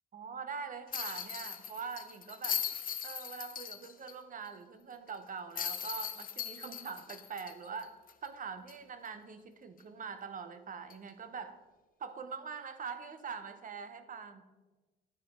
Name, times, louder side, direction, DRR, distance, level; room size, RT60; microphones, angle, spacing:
voice 1, 0.1-2.6 3.0-11.6 12.0-14.4, right 5 dB, 45° right, 10 dB, 0.8 m, -43 dB
sound 1, 0.9-4.1 4.5-4.6 5.6-8.3 8.7-8.8 10.9-11.1, left 8 dB, 45° left, 0.6 m, -39 dB
11.0 x 4.7 x 3.8 m, 1.2 s
cardioid pair, 90°, 20 cm